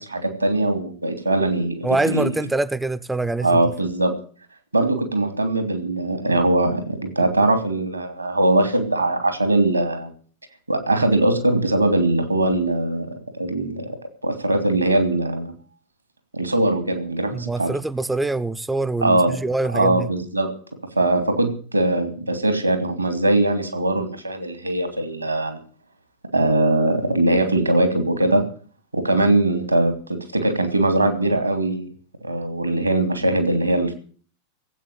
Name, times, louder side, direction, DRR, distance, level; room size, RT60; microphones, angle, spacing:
voice 1, 0.0-2.3 3.4-4.1 4.7-10.1 10.7-14.0 14.2-15.5 16.3-17.7 19.0-19.4 19.7-20.5 21.0-25.6 26.3-28.4 28.9-31.9 32.2-33.9, right 1 dB, 85° right, 3.0 m, -21 dB
voice 2, 1.8-3.6 17.3-20.1, right 2 dB, 5° right, 0.8 m, -24 dB
16.5 x 8.5 x 9.1 m
figure-of-eight pair, 90°, 0 cm